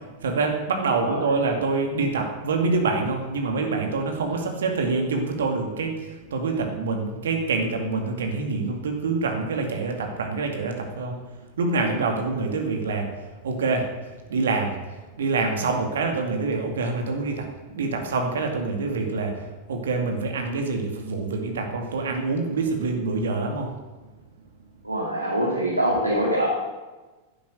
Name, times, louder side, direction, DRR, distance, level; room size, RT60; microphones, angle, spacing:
voice 1, 0.0-11.2 11.6-13.1 13.4-13.9 14.3-14.7 15.2-23.8, right 3 dB, 65° right, 3 dB, 2.3 m, -26 dB
voice 2, 1.0-1.3 4.3-4.4 24.8-26.5, right 1 dB, 85° right, -5 dB, 3.0 m, -24 dB
11.5 x 10.0 x 8.0 m, 1.2 s
figure-of-eight pair, 90°, 0 cm